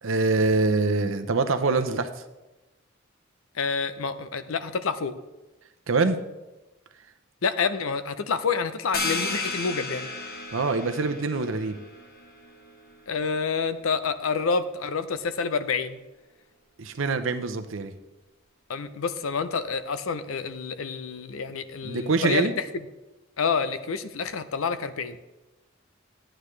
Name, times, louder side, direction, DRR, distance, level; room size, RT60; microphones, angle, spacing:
voice 1, 0.0-2.1 5.9-6.2 10.5-11.8 16.8-17.9 21.8-22.5, right 3 dB, 70° right, 9 dB, 0.7 m, -24 dB
voice 2, 3.6-5.1 7.4-10.1 13.1-16.0 18.7-22.5 23.4-25.2, left 5 dB, 90° left, 12 dB, 0.6 m, -28 dB
sound 1, 8.9-14.3, left 3 dB, 50° left, 1.4 m, -35 dB
11.5 x 8.8 x 3.3 m, 1.0 s
head